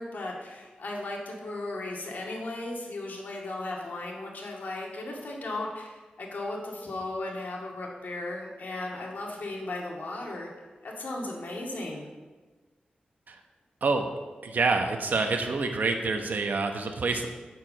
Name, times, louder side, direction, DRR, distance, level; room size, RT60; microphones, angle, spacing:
voice 1, 0.0-10.5 10.8-12.1, left 2 dB, 70° left, -1 dB, 2.1 m, -36 dB
voice 2, 14.4-17.3, right 3 dB, 70° right, 4 dB, 0.9 m, -27 dB
9.2 x 4.8 x 7.6 m, 1.3 s
wide cardioid pair, 95°, 3 cm